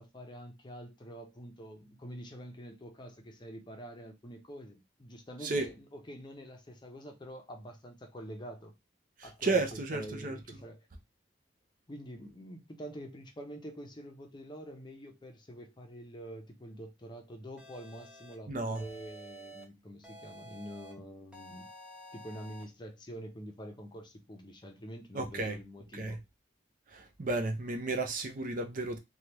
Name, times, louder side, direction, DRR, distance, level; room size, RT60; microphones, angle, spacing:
voice 1, 0.0-8.7 9.2-9.6 9.9-10.9 11.9-21.7 22.1-26.2, equal, 25° left, 0.6 m, -46 dB
voice 2, 9.2-10.4 18.5-18.8 25.1-25.6 25.9-26.2 26.9-29.0, right 3 dB, 50° right, 0.5 m, -33 dB
sound 1, 17.6-18.3 18.7-19.6 20.0-20.9 21.3-22.6, right 1 dB, 5° right, 0.8 m, -50 dB
3.2 x 2.3 x 2.9 m
head